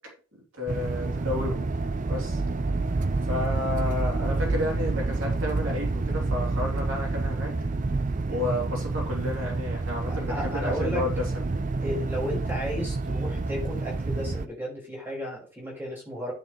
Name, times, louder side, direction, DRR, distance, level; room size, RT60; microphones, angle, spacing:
voice 1, 0.3-1.7 2.1-2.4 3.3-7.5 8.3-11.6, left 2 dB, 70° right, -1 dB, 3.0 m, -32 dB
sound 1, 0.7-14.5, right 3 dB, 35° right, 0.5 m, -28 dB
voice 2, 10.1-11.0 11.8-16.3, equal, 10° right, -3 dB, 5.3 m, -34 dB
9.5 x 7.6 x 3.1 m, 0.38 s
head